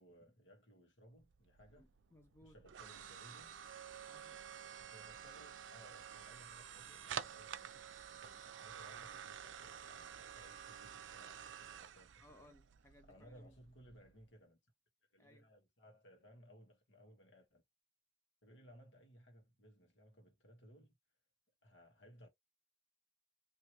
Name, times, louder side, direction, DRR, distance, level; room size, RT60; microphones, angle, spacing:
voice 1, 0.0-1.9 2.4-3.6 4.8-7.8 8.2-12.5 13.0-14.6 15.1-17.6 18.4-20.9 21.6-22.3, equal, 80° left, 1.4 m, -62 dB
sound 1, 1.2-14.2, right 8 dB, 75° right, 0.4 m, -50 dB
voice 2, 1.7-2.6 4.1-4.4 12.2-13.6 15.2-15.5, left 1 dB, 15° left, 0.4 m, -64 dB
2.9 x 2.8 x 2.9 m
head